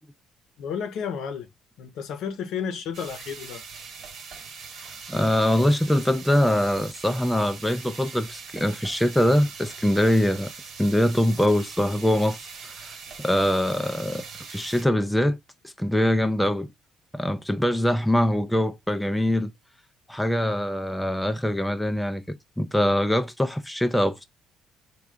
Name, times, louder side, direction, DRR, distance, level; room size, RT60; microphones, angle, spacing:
voice 1, 0.6-1.5 1.8-3.6, left 7 dB, 70° left, 0.7 m, -32 dB
sound 1, 2.9-14.8, right 5 dB, 60° right, 1.3 m, -42 dB
voice 2, 5.1-10.5 10.8-12.4 12.6-14.2 14.5-15.4 15.8-16.7 17.1-19.5 20.1-24.2, left 1 dB, 5° left, 0.4 m, -23 dB
3.3 x 2.3 x 3.7 m
cardioid pair, 105°, 0 cm